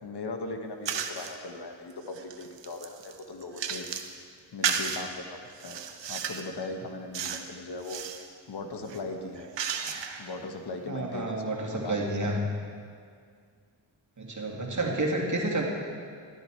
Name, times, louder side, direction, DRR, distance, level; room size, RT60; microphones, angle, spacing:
voice 1, 0.0-3.9 4.5-5.8 6.1-8.0 8.5-9.5 10.2-11.4 11.7-12.4 14.8-15.2, left 3 dB, 60° left, 4 dB, 1.3 m, -39 dB
sound 1, 0.9-1.4 1.9-4.1 4.6-5.0 5.6-6.5 7.1-7.5 7.8-8.3 8.8-10.3, right 7 dB, 75° right, 0.9 m, -33 dB
voice 2, 10.9-12.4 14.2-15.6, right 2 dB, 40° right, -1 dB, 2.3 m, -30 dB
11.5 x 10.5 x 4.5 m, 2.1 s
cardioid pair, 55°, 44 cm